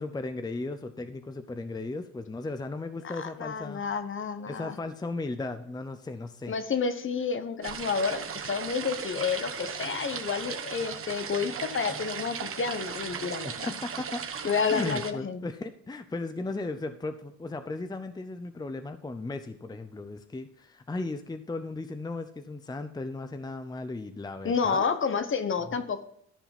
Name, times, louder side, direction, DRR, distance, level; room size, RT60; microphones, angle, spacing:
voice 1, 0.0-3.8 4.5-6.6 13.4-14.2 14.7-24.8 25.7-25.8, left 3 dB, 15° left, 9 dB, 0.6 m, -36 dB
voice 2, 3.2-4.7 6.5-13.7 14.4-15.4 24.4-26.0, left 5 dB, 40° left, 10 dB, 1.1 m, -30 dB
sound 1, 7.6-15.1, right 7 dB, 45° right, 1.2 m, -37 dB
13.5 x 4.9 x 6.0 m, 0.71 s
cardioid pair, 90°, 30 cm